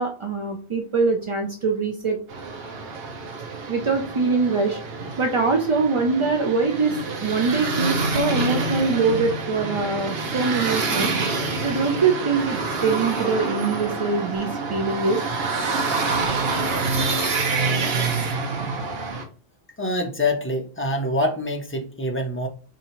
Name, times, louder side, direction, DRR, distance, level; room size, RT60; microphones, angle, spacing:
voice 1, 0.0-2.2 3.7-4.8 5.2-11.1 11.6-15.2, right 4 dB, 50° right, 3 dB, 0.3 m, -23 dB
sound 1, 2.3-19.2, right 3 dB, 70° right, 1.0 m, -27 dB
sound 2, 12.9-19.1, right 2 dB, 25° right, 1.1 m, -38 dB
voice 2, 19.8-22.5, left 1 dB, 20° left, 3 dB, 0.4 m, -25 dB
2.7 x 2.7 x 4.3 m, 0.38 s
omnidirectional pair, 1.1 m